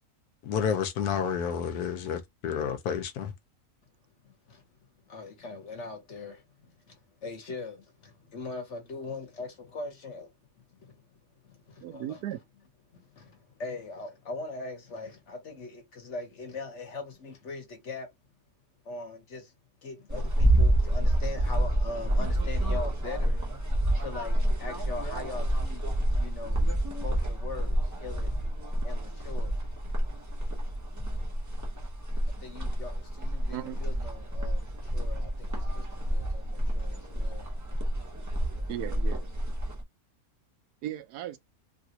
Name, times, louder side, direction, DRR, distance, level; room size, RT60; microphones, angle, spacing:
voice 1, 0.4-3.3, left 7 dB, 80° left, 1.2 m, -30 dB
voice 2, 4.2-4.6 5.1-11.1 11.4-12.2 12.9-18.1 18.8-19.5 19.8-23.7 24.0-25.9 26.2-26.6 27.0-28.4 28.8-29.7 32.2-37.5, left 3 dB, 50° left, 1.3 m, -41 dB
voice 3, 11.8-12.4 33.5-33.9 38.7-39.3 40.8-41.4, right 12 dB, 80° right, 1.1 m, -36 dB
sound 1, 20.1-39.8, right 1 dB, 20° right, 0.5 m, -28 dB
3.2 x 2.4 x 2.8 m
omnidirectional pair, 1.6 m